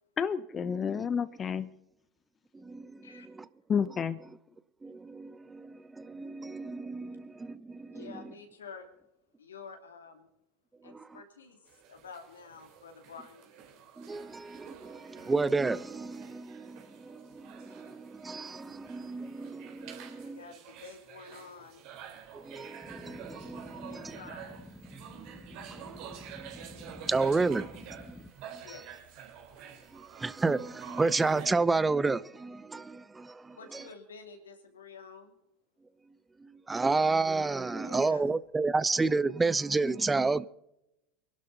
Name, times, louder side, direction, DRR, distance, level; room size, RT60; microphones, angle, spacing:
voice 1, 0.2-1.7 3.7-4.2, left 7 dB, 30° left, 0.8 m, -30 dB
voice 2, 2.5-3.2 4.8-8.1 10.9-11.0 14.0-20.4 22.3-24.2 25.7-25.8 27.1-27.7 28.1-28.2 28.5-28.6 29.9-33.8 36.7-40.5, right 3 dB, 15° right, 0.6 m, -31 dB
voice 3, 7.9-8.9 9.4-10.3 10.8-11.6 11.9-13.5 20.2-21.8 23.9-24.6 28.5-28.9 33.5-35.4 37.7-38.3, left 5 dB, 85° left, 2.7 m, -49 dB
sound 1, 11.7-31.5, right 8 dB, 60° right, 3.8 m, -49 dB
sound 2, 22.8-28.3, left 1 dB, 10° left, 1.7 m, -49 dB
25.0 x 11.5 x 4.0 m
hypercardioid pair, 80°, 0 cm